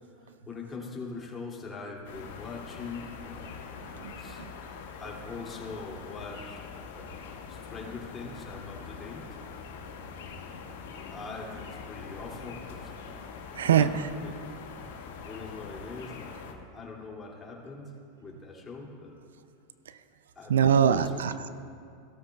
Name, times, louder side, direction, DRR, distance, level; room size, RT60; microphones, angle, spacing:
voice 1, 0.0-3.7 4.2-4.6 5.0-6.6 7.0-9.4 11.1-13.9 14.2-14.4 14.8-17.9 18.2-19.2 20.3-21.2, left 4 dB, 20° left, -3 dB, 2.6 m, -42 dB
sound 1, 2.0-16.5, left 5 dB, 70° left, 1.2 m, -43 dB
voice 2, 4.0-4.3 13.6-14.1 19.9-20.0 20.5-21.5, right 8 dB, 80° right, 13 dB, 0.4 m, -24 dB
17.0 x 13.0 x 2.4 m, 2.4 s
hypercardioid pair, 95°, 0 cm